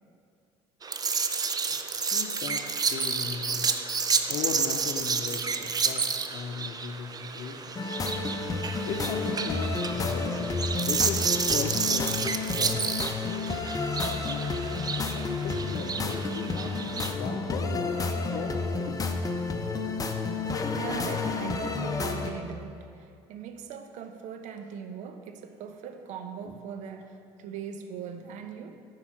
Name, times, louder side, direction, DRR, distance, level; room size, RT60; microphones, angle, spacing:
sound 1, 0.8-17.2, right 5 dB, 30° right, 0.6 m, -30 dB
voice 1, 2.1-3.8 4.3-7.8 8.8-13.0 14.2-14.5 15.0-19.2, left 6 dB, 60° left, 1 dB, 0.7 m, -37 dB
sound 2, 7.8-22.3, left 3 dB, 25° left, 0.8 m, -31 dB
voice 2, 20.8-28.8, right 7 dB, 60° right, 7 dB, 0.8 m, -40 dB
9.6 x 4.8 x 6.0 m, 2.3 s
hypercardioid pair, 70°, 14 cm